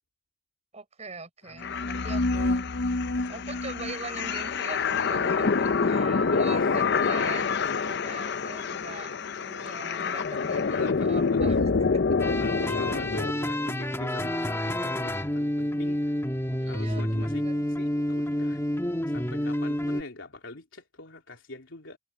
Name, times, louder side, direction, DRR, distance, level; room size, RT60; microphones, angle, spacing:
voice 1, 0.7-2.6 3.2-11.7 12.7-12.8 16.6-17.6, right 3 dB, 35° right, 6.2 m, -42 dB
sound 1, 1.6-13.3, left 4 dB, 60° left, 0.7 m, -26 dB
voice 2, 6.3-6.9 10.7-11.4 12.4-16.2 16.6-18.6 19.1-22.0, left 2 dB, 85° left, 3.0 m, -43 dB
sound 2, 12.2-20.0, left 1 dB, 15° left, 1.7 m, -29 dB
head